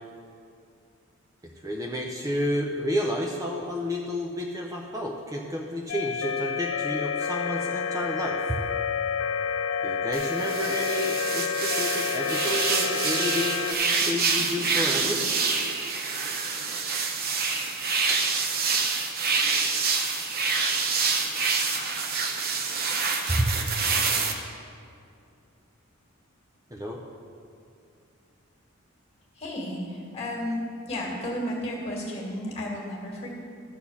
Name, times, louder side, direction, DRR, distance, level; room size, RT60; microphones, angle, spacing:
voice 1, 1.4-8.6 9.8-15.2 23.3-23.5 26.7-27.0, equal, 15° right, 0 dB, 0.6 m, -30 dB
sound 1, 5.9-13.7, left 6 dB, 70° left, 0.4 m, -29 dB
sound 2, 10.1-24.3, right 4 dB, 45° right, 0.8 m, -27 dB
voice 2, 29.4-33.4, left 1 dB, 30° left, -2 dB, 2.0 m, -33 dB
12.5 x 4.4 x 7.1 m, 2.4 s
head